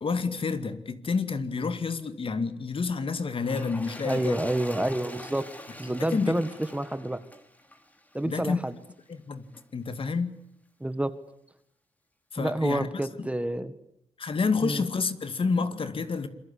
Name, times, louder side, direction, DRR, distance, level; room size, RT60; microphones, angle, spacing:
voice 1, 0.0-4.4 6.1-6.4 8.2-8.6 9.1-9.5 9.7-10.3 12.3-13.3 14.2-16.3, left 4 dB, 50° left, 2.3 m, -29 dB
Toilet flush, 3.4-8.8 9.5-9.6, left 1 dB, 15° left, 3.4 m, -45 dB
voice 2, 4.0-5.5 5.8-7.2 8.1-8.8 10.8-11.1 12.4-13.8 14.6-14.9, right 1 dB, 10° right, 1.7 m, -28 dB
27.0 x 23.0 x 8.7 m
cardioid pair, 90°, 12 cm